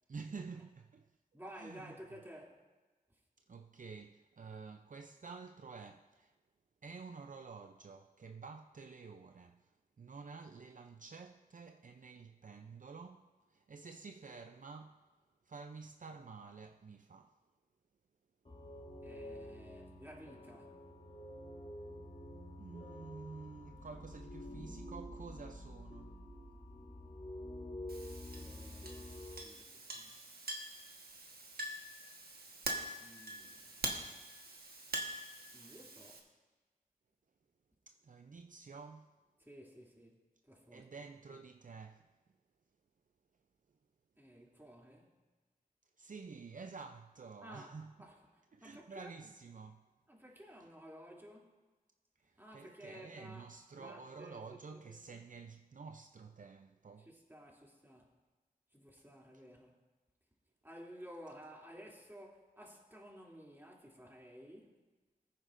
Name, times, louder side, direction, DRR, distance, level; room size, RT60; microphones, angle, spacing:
voice 1, 0.1-1.1 1.6-1.9 3.5-6.3 6.8-9.7 10.0-15.0 15.4-17.4 22.6-26.2 37.9-39.1 40.7-42.1 46.0-48.1 48.5-49.9 52.2-57.1, right 4 dB, 60° right, 0.4 m, -50 dB
voice 2, 1.3-2.6 3.1-3.2 19.0-20.8 28.3-30.2 33.0-33.9 35.5-36.3 39.4-40.9 44.2-45.1 47.4-47.7 48.0-49.1 50.1-51.6 52.4-53.5 53.7-54.9 57.0-58.2 58.7-59.8 60.6-64.8, equal, 15° right, 2.7 m, -54 dB
sound 1, 18.4-29.4, left 1 dB, 45° left, 2.4 m, -48 dB
Chink clink, 27.9-36.2, right 2 dB, 85° right, 1.3 m, -44 dB
20.0 x 9.6 x 2.5 m
wide cardioid pair, 60°, 15 cm